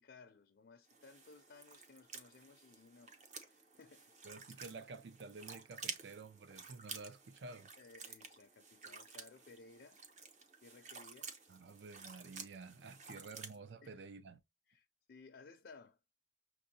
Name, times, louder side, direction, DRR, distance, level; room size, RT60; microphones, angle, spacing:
voice 1, 0.0-3.1 3.4-4.1 7.8-10.0 10.6-11.3 13.1-13.3 13.8-14.0 14.7-16.0, left 4 dB, 75° left, 0.4 m, -59 dB
sound 1, 0.9-13.6, right 4 dB, 40° right, 0.7 m, -52 dB
voice 2, 4.2-7.7 11.5-14.4, right 4 dB, 85° right, 0.5 m, -51 dB
5.9 x 2.6 x 2.6 m
head